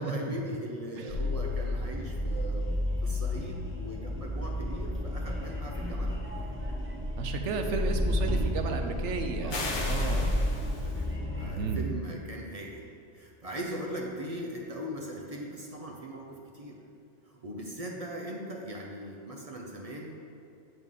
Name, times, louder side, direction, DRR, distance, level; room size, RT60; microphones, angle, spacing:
voice 1, 0.0-2.7 3.0-6.6 9.4-10.4 10.8-16.8 17.2-20.1, equal, 40° right, -1 dB, 0.6 m, -40 dB
sound 1, 1.1-11.6, left 1 dB, 10° right, 0.9 m, -31 dB
voice 2, 7.2-10.4 11.6-11.9, right 4 dB, 80° right, 5 dB, 1.0 m, -33 dB
sound 2, 9.5-11.1, left 3 dB, 80° left, 1.2 m, -36 dB
7.9 x 5.4 x 3.7 m, 2.5 s
omnidirectional pair, 1.2 m